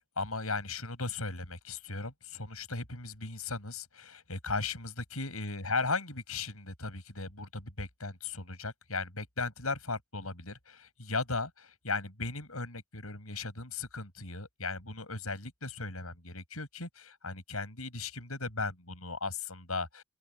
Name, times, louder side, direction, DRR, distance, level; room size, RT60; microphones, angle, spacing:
voice 1, 0.0-20.0, left 3 dB, 80° left, 8.0 m, -37 dB
open air
head